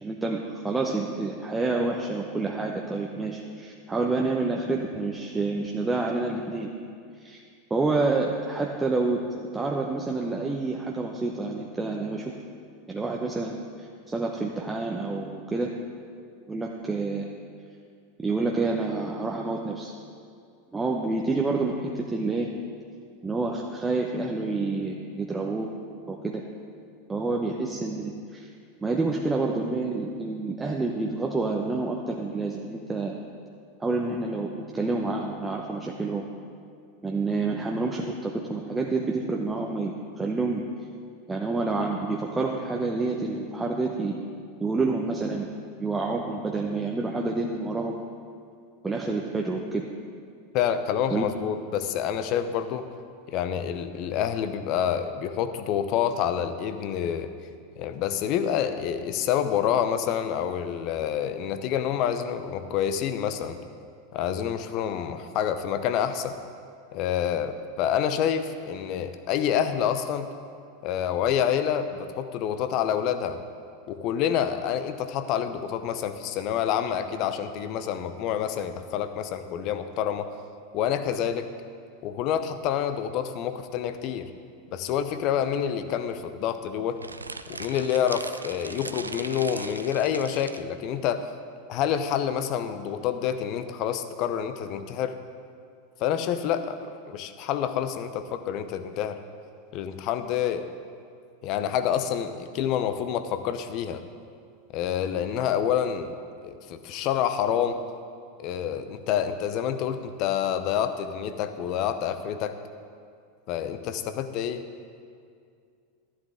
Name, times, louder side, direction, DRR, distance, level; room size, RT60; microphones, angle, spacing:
voice 1, 0.0-6.7 7.2-7.4 7.7-12.3 12.9-15.7 16.5-17.3 18.2-19.9 20.7-22.5 23.2-25.7 26.1-26.4 27.1-28.5 28.8-33.1 33.8-36.3 37.0-40.6 41.3-44.2 44.6-45.5 45.8-48.0 48.8-49.9 51.1-51.2, right 3 dB, 15° right, 0 dB, 0.9 m, -28 dB
voice 2, 50.5-52.9 53.3-57.3 57.8-63.6 64.1-66.4 66.9-70.3 70.8-73.4 73.9-80.3 80.7-81.5 82.0-84.3 84.7-87.0 87.5-91.3 91.7-95.2 96.0-99.2 99.7-100.7 101.4-104.0 104.7-106.2 106.4-107.8 108.4-112.5 113.5-114.7, left 9 dB, 45° left, 10 dB, 0.7 m, -27 dB
sound 1, 87.0-90.7, right 3 dB, 90° right, 0.4 m, -39 dB
12.5 x 11.0 x 3.7 m, 2.3 s
figure-of-eight pair, 90°, 0 cm